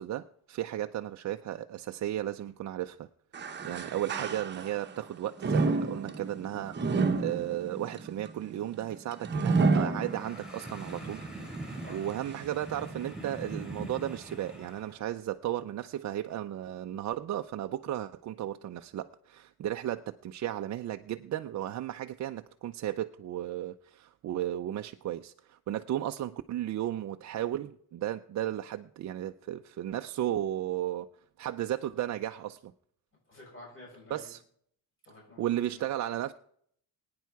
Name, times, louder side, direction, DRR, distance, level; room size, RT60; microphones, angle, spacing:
voice 1, 0.0-3.1 3.6-11.3 11.6-31.1 31.4-32.7 34.1-34.4 35.4-36.3, right 12 dB, 45° right, 0.5 m, -34 dB
sound 1, 3.3-4.9 5.4-10.7 11.1-11.2 12.1-12.2, right 4 dB, 25° right, 1.0 m, -30 dB
sound 2, 9.9-15.0, right 2 dB, ahead, 4.2 m, -42 dB
voice 2, 33.3-34.3 35.0-35.9, left 2 dB, 30° left, 7.8 m, -51 dB
22.0 x 9.5 x 4.7 m
cardioid pair, 150°, 39 cm